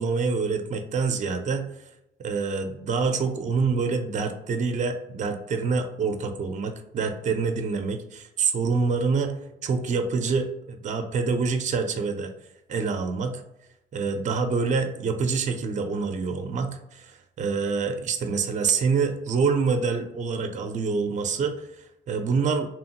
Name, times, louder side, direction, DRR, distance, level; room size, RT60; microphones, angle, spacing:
voice 1, 0.0-1.6 2.2-9.4 9.6-12.3 12.7-13.4 13.9-22.7, right 5 dB, 40° right, 6 dB, 0.4 m, -26 dB
2.9 x 2.1 x 2.8 m, 0.85 s
cardioid pair, 90°, 20 cm